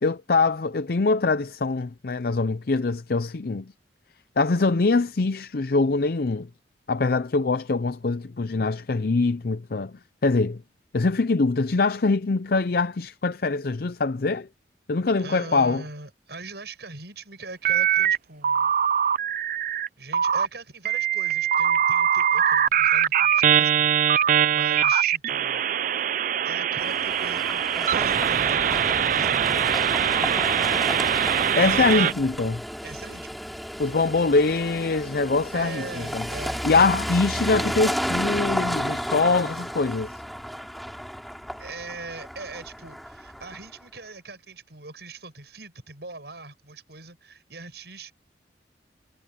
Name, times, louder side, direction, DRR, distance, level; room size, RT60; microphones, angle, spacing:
voice 1, 0.0-3.7 4.4-6.5 6.9-10.6 10.9-14.5 14.9-15.8 31.6-32.6 33.8-36.2 36.6-40.1, left 3 dB, 55° left, 0.6 m, -23 dB
voice 2, 15.2-18.7 20.0-25.7 26.1-30.2 32.8-33.6 35.5-36.9 41.6-48.1, right 3 dB, 65° right, 7.3 m, -41 dB
sound 1, 17.6-18.2 18.4-19.9 20.1-20.5 20.9-32.1, right 9 dB, 45° right, 0.4 m, -22 dB
sound 2, 26.8-43.8, equal, ahead, 4.8 m, -32 dB
head